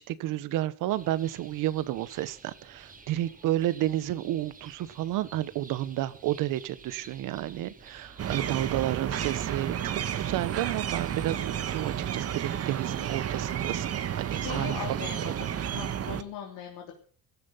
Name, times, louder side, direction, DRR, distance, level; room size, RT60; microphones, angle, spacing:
voice 1, 0.0-15.3, right 14 dB, 75° right, 16 dB, 1.3 m, -31 dB
sound 1, 0.9-15.8, right 4 dB, 25° right, 3.0 m, -50 dB
sound 2, 8.2-16.2, right 9 dB, 50° right, 1.4 m, -32 dB
voice 2, 14.3-16.9, left 8 dB, 85° left, 1 dB, 3.6 m, -40 dB
16.0 x 13.5 x 5.7 m, 0.44 s
cardioid pair, 105°, 32 cm